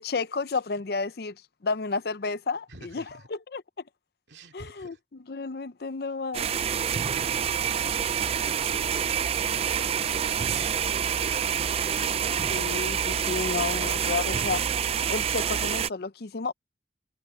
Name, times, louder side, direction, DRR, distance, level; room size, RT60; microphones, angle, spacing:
voice 1, 0.0-1.4 1.6-3.0 3.3-3.6 4.5-4.9 5.3-6.5 12.5-14.6 15.1-16.5, left 4 dB, 55° left, 0.6 m, -31 dB
voice 2, 2.7-3.3 4.3-5.0 6.9-11.6, right 2 dB, 70° right, 2.5 m, -49 dB
sound 1, 6.3-15.9, right 8 dB, 35° right, 0.3 m, -27 dB
head